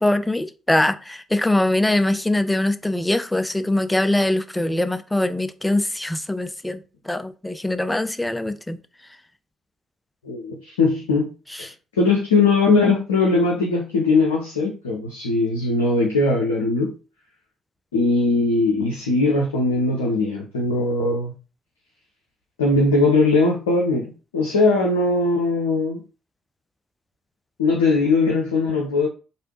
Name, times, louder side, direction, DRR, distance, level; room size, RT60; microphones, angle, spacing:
voice 1, 0.0-8.8, left 1 dB, 10° left, 11 dB, 0.4 m, -22 dB
voice 2, 10.2-11.3 11.6-11.7 12.0-16.9 17.9-21.3 22.6-26.0 27.6-29.1, left 3 dB, 80° left, -1 dB, 0.5 m, -20 dB
3.3 x 2.6 x 2.9 m, 0.34 s
figure-of-eight pair, 45°, 0 cm